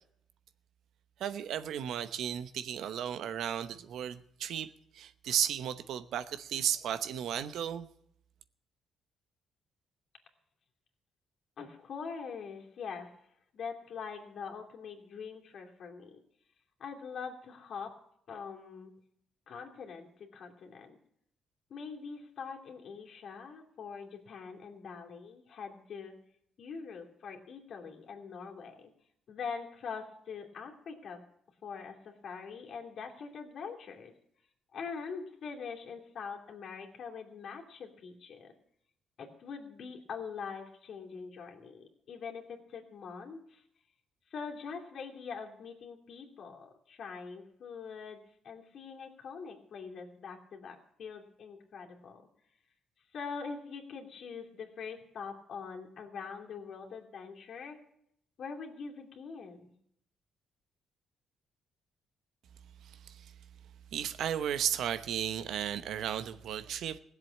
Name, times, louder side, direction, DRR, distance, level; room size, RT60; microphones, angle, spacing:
voice 1, 1.2-7.9 62.8-63.2 63.9-67.0, right 9 dB, 75° right, 12 dB, 0.8 m, -34 dB
voice 2, 11.6-13.1 13.5-16.2 16.8-17.9 18.3-18.9 19.5-21.0 21.7-26.2 26.6-28.9 29.3-31.2 31.6-34.1 34.7-38.6 39.2-43.6 44.3-52.3 53.1-57.8 58.4-59.7, left 5 dB, 60° left, 1 dB, 2.7 m, -43 dB
17.0 x 7.6 x 8.5 m, 0.71 s
cardioid pair, 90°, 0 cm